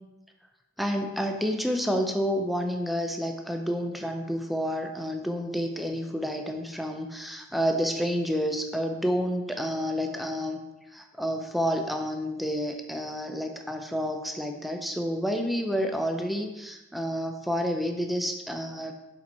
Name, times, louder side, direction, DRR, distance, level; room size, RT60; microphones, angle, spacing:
voice 1, 0.8-10.6 10.9-18.9, equal, ahead, 4 dB, 0.5 m, -29 dB
7.0 x 4.3 x 4.2 m, 1.0 s
head